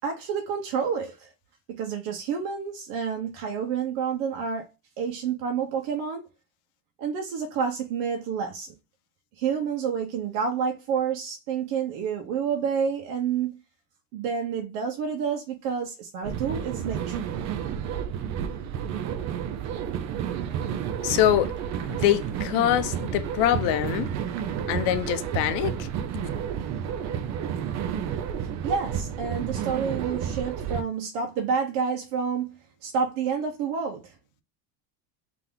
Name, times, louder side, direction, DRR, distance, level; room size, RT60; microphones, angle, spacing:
voice 1, 0.0-1.3 1.7-4.7 5.0-6.3 7.0-8.7 9.4-13.6 14.1-17.2 28.6-32.5 32.8-34.1, right 6 dB, 70° right, 1.0 m, -29 dB
sound 1, 16.2-30.8, right 8 dB, 35° right, 0.4 m, -31 dB
voice 2, 21.0-21.5 21.9-24.1 24.7-25.9, left 12 dB, 60° left, 0.8 m, -24 dB
3.5 x 2.9 x 3.5 m
supercardioid pair, 130°, 47 cm